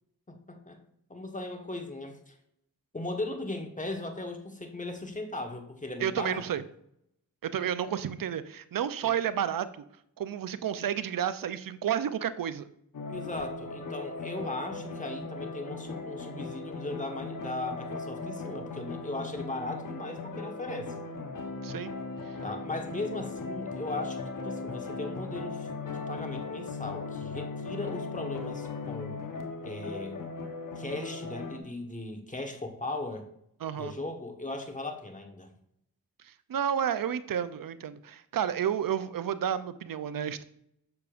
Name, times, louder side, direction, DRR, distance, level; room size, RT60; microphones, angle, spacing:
voice 1, 0.3-0.8 1.1-2.3 2.9-6.4 9.0-9.1 13.1-20.9 22.4-25.7 25.9-29.2 29.6-30.2 30.8-33.3 33.7-35.5, left 2 dB, 20° left, 4 dB, 1.4 m, -38 dB
voice 2, 6.0-6.6 7.4-9.8 10.2-12.7 21.6-21.9 33.6-33.9 36.2-40.4, right 9 dB, 65° right, 13 dB, 0.6 m, -31 dB
sound 1, 12.9-31.6, left 3 dB, 55° left, 1.2 m, -38 dB
7.0 x 6.7 x 2.5 m, 0.72 s
cardioid pair, 50°, 37 cm